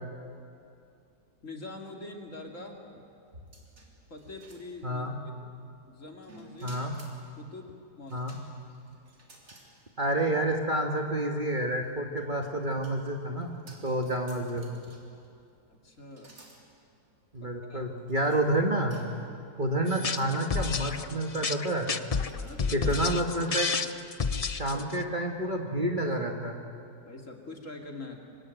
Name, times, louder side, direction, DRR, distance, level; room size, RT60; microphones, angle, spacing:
voice 1, 1.4-2.8 4.1-5.1 5.4-5.5 5.9-6.8 7.4-8.2 15.7-16.3 17.4-17.8 22.3-23.1 24.7-24.8 27.0-28.2, left 2 dB, 45° left, 1 dB, 3.0 m, -44 dB
sound 1, 3.3-5.1 6.2-7.2 8.1-9.7 10.1-10.2 11.8-15.3 16.1-16.6 17.3-17.4 18.1-18.4 18.9-19.5 20.2-20.6 21.3-21.6 22.3-23.1, right 1 dB, 50° right, 4.0 m, -54 dB
voice 2, 4.8-5.1 6.6-6.9 8.1-8.4 10.0-13.6 13.8-14.7 17.3-19.0 19.6-21.9 22.7-23.7 24.3-26.6, right 1 dB, 30° right, 2 dB, 1.7 m, -29 dB
sound 2, 19.9-25.0, left 5 dB, 75° left, 0.3 m, -30 dB
26.0 x 24.0 x 9.2 m, 2.6 s
omnidirectional pair, 1.9 m